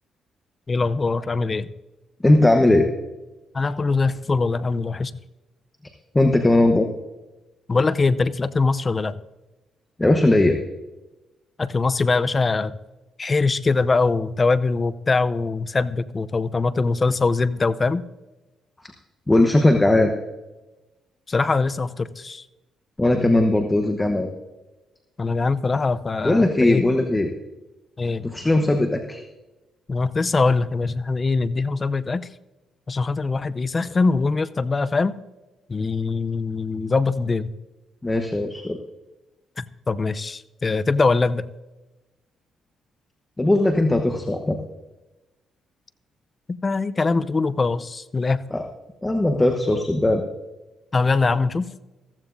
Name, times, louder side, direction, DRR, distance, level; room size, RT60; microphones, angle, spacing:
voice 1, 0.7-1.7 3.5-5.1 7.7-9.2 11.6-12.7 13.2-18.0 21.3-22.4 25.2-26.8 28.0-28.3 29.9-32.3 32.9-35.2 35.7-37.5 39.6-41.4 46.5-48.4 50.9-51.7, left 3 dB, 30° left, 16 dB, 0.5 m, -22 dB
voice 2, 2.2-2.9 6.1-6.9 10.0-10.6 19.3-20.1 23.0-24.3 26.2-27.3 28.2-29.2 38.0-38.8 43.4-44.6 48.5-48.6 49.0-50.2, left 2 dB, 15° left, 5 dB, 1.0 m, -18 dB
14.5 x 14.5 x 2.6 m, 1.1 s
cardioid pair, 90°, 0 cm